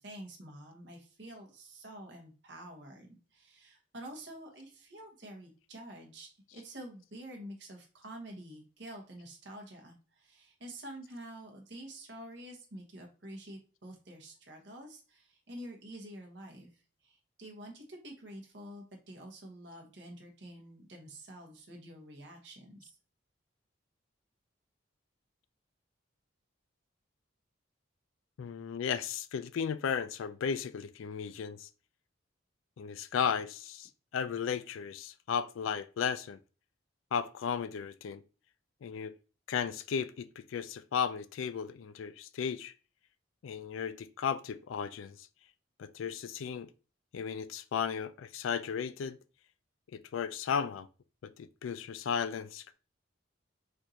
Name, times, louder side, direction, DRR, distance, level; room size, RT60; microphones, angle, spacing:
voice 1, 0.0-22.9, right 1 dB, 65° right, 1.1 m, -48 dB
voice 2, 28.4-31.7 32.8-36.4 37.1-38.2 38.8-39.1 39.5-42.7 43.4-45.2 45.8-46.7 47.1-49.2 49.9-50.9 51.4-52.7, left 7 dB, 90° left, 0.3 m, -35 dB
4.4 x 2.5 x 2.8 m
head